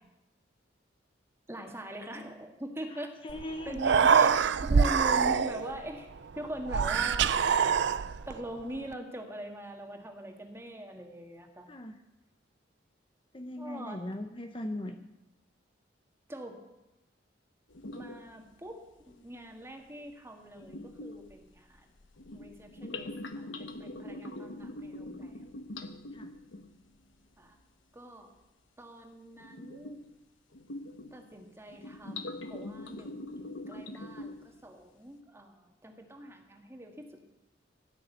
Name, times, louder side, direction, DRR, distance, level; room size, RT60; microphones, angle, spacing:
voice 1, 1.5-3.1 3.7-6.1 6.4-7.3 8.3-11.7 13.6-14.0 16.3-16.6 17.9-21.9 22.3-25.5 27.4-27.6 27.9-28.3 28.8-30.0 31.1-37.2, equal, 15° right, 3 dB, 1.8 m, -42 dB
voice 2, 2.9-4.0 11.7-12.0 13.3-15.0 26.1-26.3, left 1 dB, 25° left, 6 dB, 0.7 m, -39 dB
Human voice, 3.3-3.4 3.7-5.8 6.7-8.4, right 6 dB, 65° right, 0.5 m, -24 dB
sound 1, 17.7-18.4 19.0-19.1 20.6-26.9 29.4-30.1 30.5-31.3 31.7-34.6, left 2 dB, 85° left, 1.1 m, -43 dB
16.0 x 6.5 x 9.1 m, 0.96 s
head